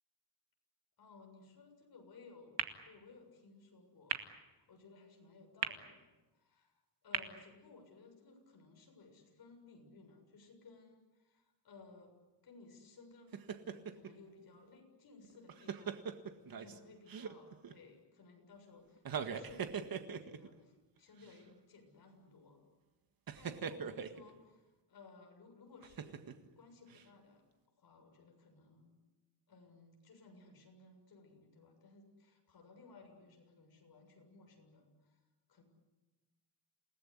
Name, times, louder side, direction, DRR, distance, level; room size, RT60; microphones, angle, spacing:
voice 1, 1.0-4.2 4.6-12.1 12.4-16.0 16.5-22.6 23.4-26.2 26.6-27.4 27.8-28.9 29.5-35.2 35.5-35.6, left 3 dB, 55° left, 3 dB, 7.2 m, -59 dB
sound 1, 2.6-8.5, right 8 dB, 70° right, 2.2 m, -45 dB
sound 2, 13.3-14.1 15.2-16.8 17.1-17.7 19.0-20.5 21.2-21.3 23.3-24.2 25.8-26.5 26.9-27.0, right 7 dB, 50° right, 1.8 m, -41 dB
28.5 x 18.5 x 9.8 m, 1.1 s
wide cardioid pair, 160°, 44 cm